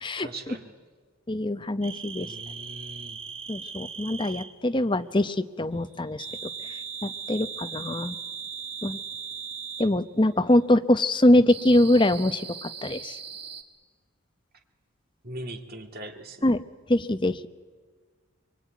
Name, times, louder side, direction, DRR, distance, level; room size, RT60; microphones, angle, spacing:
voice 1, 0.2-0.7 2.2-3.2 15.2-16.5, right 1 dB, 45° right, 4 dB, 2.1 m, -40 dB
voice 2, 1.3-2.3 3.5-6.2 7.0-8.2 8.8-9.0 9.8-13.1 16.4-16.6 16.9-17.5, left 1 dB, 25° left, 10 dB, 0.7 m, -23 dB
sound 1, 1.8-4.5 6.2-9.9 11.5-13.6, right 6 dB, 25° right, 1.5 m, -38 dB
24.0 x 23.0 x 9.3 m, 1.5 s
head